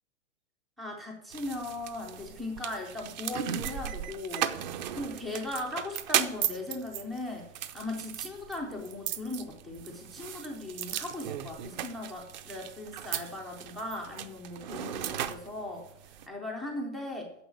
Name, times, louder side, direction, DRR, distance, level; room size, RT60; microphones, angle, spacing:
voice 1, 0.8-4.5 4.9-17.3, left 2 dB, ahead, 1 dB, 0.4 m, -38 dB
sound 1, 1.3-16.3, right 10 dB, 35° right, 0.7 m, -36 dB
10.0 x 6.8 x 8.2 m, 0.83 s
hypercardioid pair, 160°, 38 cm